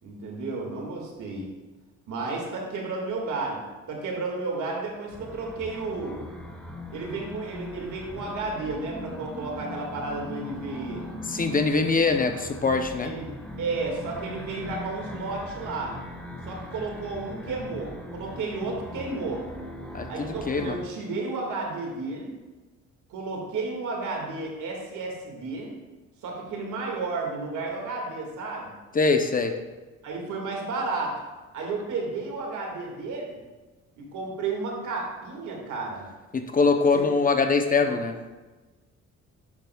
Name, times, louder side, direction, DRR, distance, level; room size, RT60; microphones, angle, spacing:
voice 1, 0.0-1.5 2.1-3.6 3.9-6.2 6.9-11.1 13.0-15.9 16.4-19.4 20.1-22.3 23.1-25.7 26.2-28.7 30.0-31.1 31.5-33.4 34.0-36.1 36.9-37.0 37.8-38.0, right 3 dB, 80° right, 0 dB, 1.9 m, -32 dB
sound 1, 5.1-20.8, left 1 dB, 5° left, 1.2 m, -39 dB
voice 2, 11.3-13.1 19.9-20.8 28.9-29.5 36.3-38.2, left 4 dB, 30° left, 6 dB, 0.6 m, -23 dB
10.5 x 6.0 x 2.3 m, 1.2 s
cardioid pair, 90°, 30 cm